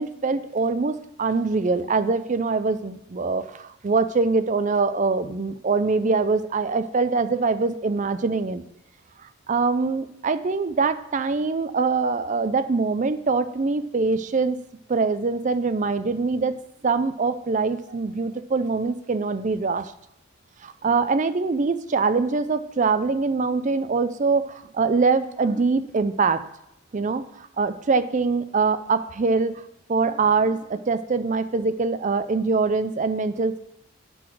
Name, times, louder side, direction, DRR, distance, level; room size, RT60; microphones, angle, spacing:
voice 1, 0.0-8.6 9.5-14.6 14.9-16.6 16.8-19.9 20.6-26.4 26.9-29.6 29.9-33.6, right 4 dB, 35° right, 12 dB, 0.4 m, -23 dB
10.5 x 4.0 x 6.1 m, 0.80 s
head